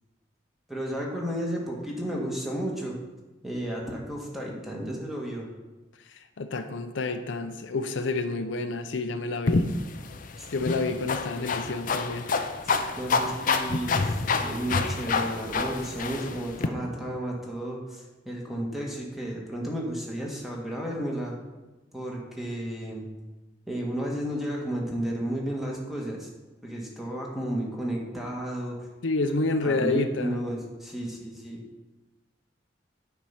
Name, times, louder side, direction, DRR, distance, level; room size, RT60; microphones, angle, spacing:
voice 1, 0.7-3.0 3.4-5.5 10.4-10.5 12.6-21.4 21.9-23.1 23.7-26.3 26.6-28.9 29.6-31.6, right 1 dB, ahead, -2 dB, 1.5 m, -33 dB
voice 2, 6.1-9.6 10.5-12.3 29.0-30.4, left 3 dB, 90° left, 8 dB, 0.6 m, -29 dB
sound 1, 9.5-16.7, left 4 dB, 45° left, 0.5 m, -28 dB
8.9 x 4.6 x 5.6 m, 1.1 s
head